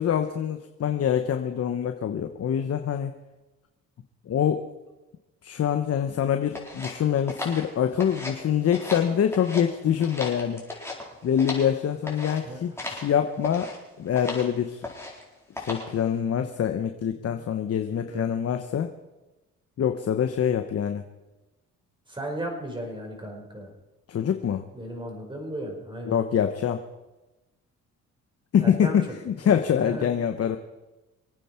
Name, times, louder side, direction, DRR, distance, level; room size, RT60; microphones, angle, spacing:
voice 1, 0.0-3.1 4.3-4.7 5.4-10.6 11.2-14.8 15.6-18.9 19.8-21.0 24.1-24.6 26.1-26.8 28.5-30.6, left 8 dB, 55° left, 7 dB, 1.0 m, -25 dB
sound 1, 6.5-8.4 8.7-9.7 10.0-11.7 12.1-12.4 12.8-13.1 13.4-13.8 14.2-14.5 14.8-15.2 15.6-16.0, left 2 dB, 10° left, 4.1 m, -36 dB
voice 2, 22.1-23.7 24.7-26.2 28.6-29.2 29.8-30.1, right 1 dB, 15° right, 1 dB, 5.2 m, -35 dB
25.5 x 9.2 x 4.5 m, 1.0 s
cardioid pair, 90°, 30 cm